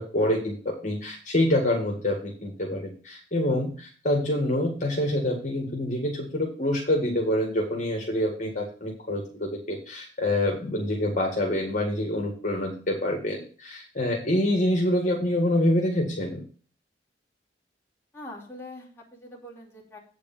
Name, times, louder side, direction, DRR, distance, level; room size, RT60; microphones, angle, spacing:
voice 1, 0.0-16.4, left 1 dB, 40° left, -1 dB, 1.8 m, -26 dB
voice 2, 18.1-20.0, left 1 dB, 10° left, -5 dB, 2.8 m, -43 dB
8.4 x 5.0 x 7.1 m, 0.41 s
head